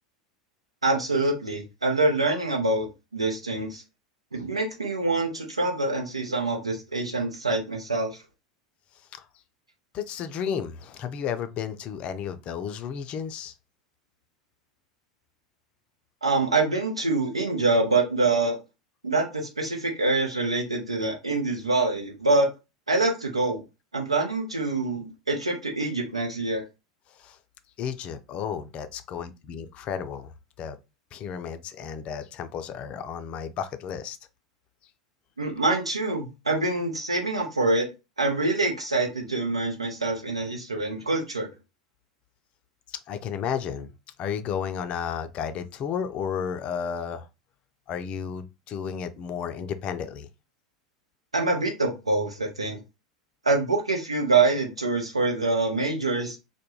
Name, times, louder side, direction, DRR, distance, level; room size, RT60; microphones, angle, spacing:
voice 1, 0.8-3.8 4.3-8.2 16.2-18.6 19.0-22.5 22.9-23.6 23.9-26.6 35.4-37.9 38.2-41.5 51.3-52.8 53.4-56.4, right 3 dB, 85° right, 0.8 m, -25 dB
voice 2, 9.9-13.5 27.1-27.4 27.8-30.3 30.6-30.8 31.1-34.2 42.9-43.9 44.2-47.3 47.9-50.3, left 7 dB, 40° left, 0.3 m, -33 dB
2.2 x 2.1 x 3.0 m
figure-of-eight pair, 80°, 3 cm